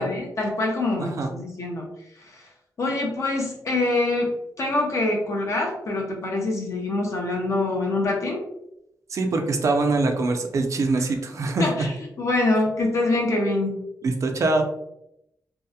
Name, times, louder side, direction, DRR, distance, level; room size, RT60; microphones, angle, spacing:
voice 1, 0.0-1.9 2.2-2.5 2.8-8.4 11.6-13.7, left 2 dB, 45° left, 0 dB, 0.4 m, -25 dB
voice 2, 9.1-11.9 14.0-14.7, right 3 dB, 50° right, 5 dB, 0.3 m, -23 dB
2.6 x 2.0 x 2.2 m, 0.80 s
wide cardioid pair, 175°, 7 cm